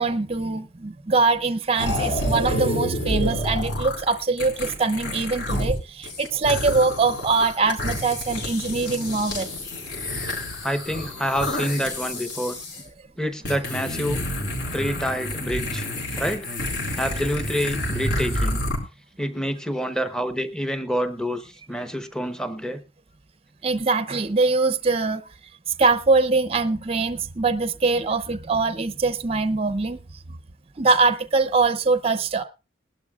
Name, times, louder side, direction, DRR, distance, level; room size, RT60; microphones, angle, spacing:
voice 1, 0.0-9.5 23.6-25.2 25.8-30.0 30.8-32.4, right 3 dB, 30° right, 0.6 m, -23 dB
sound 1, 1.8-5.7 6.0-12.8 13.4-18.8, left 1 dB, 65° left, 4.8 m, -28 dB
voice 2, 10.6-12.6 13.2-14.2 14.7-16.5 16.9-18.6 19.2-22.8, equal, 5° left, 0.8 m, -27 dB
20.5 x 12.0 x 2.3 m
head